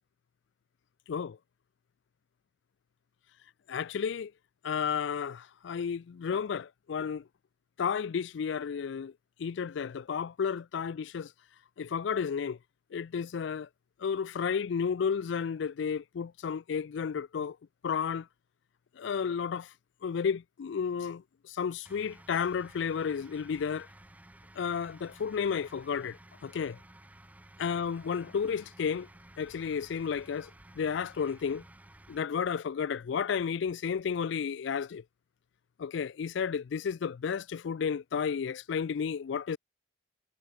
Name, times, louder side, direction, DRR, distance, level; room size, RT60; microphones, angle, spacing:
voice 1, 3.7-4.3 4.6-7.2 7.8-9.1 9.4-11.3 11.8-12.6 12.9-13.7 14.0-17.6 17.8-18.3 19.0-19.7 20.0-23.9 24.6-26.8 27.6-29.1 29.4-30.5 30.8-31.6 32.1-35.0 35.8-39.6, left 6 dB, 70° left, 0.4 m, -32 dB
sound 1, 21.8-32.2, right 1 dB, 10° right, 0.7 m, -54 dB
head